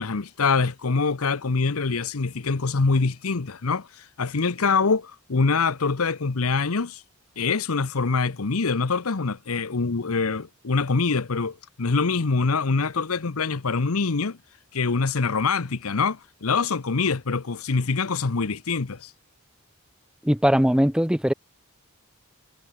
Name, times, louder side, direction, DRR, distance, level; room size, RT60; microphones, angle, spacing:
voice 1, 0.0-7.0 7.4-14.4 14.7-19.1, left 4 dB, 85° left, 0.9 m, -24 dB
voice 2, 20.2-21.3, equal, 5° right, 0.9 m, -20 dB
head